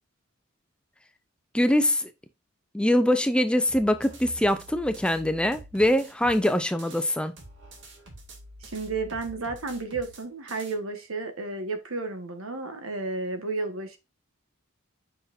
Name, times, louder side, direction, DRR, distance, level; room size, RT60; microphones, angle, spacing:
voice 1, 1.5-2.1 2.7-7.3, left 1 dB, 5° left, 0.4 m, -23 dB
sound 1, 3.7-7.1 7.4-10.7, right 2 dB, 60° right, 2.0 m, -47 dB
voice 2, 8.6-14.0, right 3 dB, 85° right, 1.4 m, -32 dB
8.1 x 5.7 x 2.6 m
head